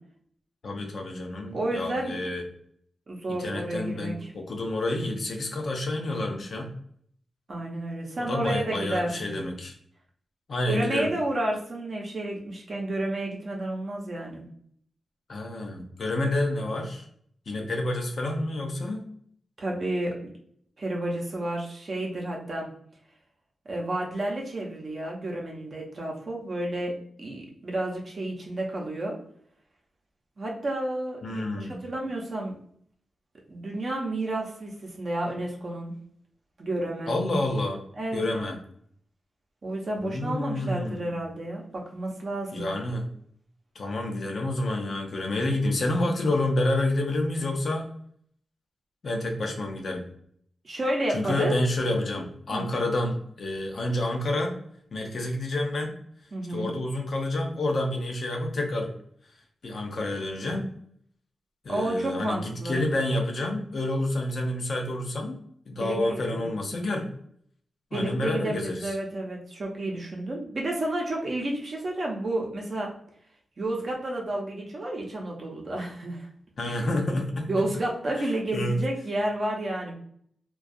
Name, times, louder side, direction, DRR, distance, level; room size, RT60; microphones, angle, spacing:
voice 1, 0.6-2.4 3.3-6.7 8.2-9.7 10.5-11.1 15.3-17.1 17.5-19.0 31.2-31.8 37.1-37.8 38.1-38.6 40.0-41.2 42.5-43.1 43.8-47.9 49.0-50.1 51.1-54.5 54.9-55.9 56.5-58.9 59.6-60.6 61.6-65.4 65.7-67.1 67.9-68.9 76.6-77.5 78.2-78.8, left 1 dB, 55° left, 2 dB, 0.5 m, -29 dB
voice 2, 1.5-2.2 3.1-4.3 7.5-9.4 10.6-14.4 19.6-20.3 20.8-22.7 23.7-29.2 30.4-32.5 33.5-35.9 36.6-37.1 38.0-38.5 39.6-42.6 50.6-51.5 52.5-52.6 56.3-56.7 61.7-62.8 65.8-66.5 67.9-72.9 73.6-76.3 76.6-76.8 77.5-79.9, right 1 dB, 45° right, -1 dB, 0.6 m, -31 dB
2.4 x 2.3 x 2.5 m, 0.64 s
wide cardioid pair, 135°, 0 cm